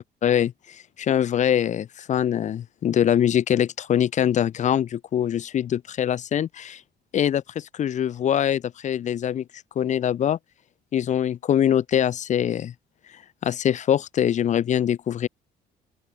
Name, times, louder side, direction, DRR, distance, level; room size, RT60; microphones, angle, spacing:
voice 1, 0.0-6.8 7.1-9.4 9.8-10.4 10.9-12.7 13.4-15.3, left 10 dB, 45° left, 0.7 m, -23 dB
open air
cardioid pair, 110°, 17 cm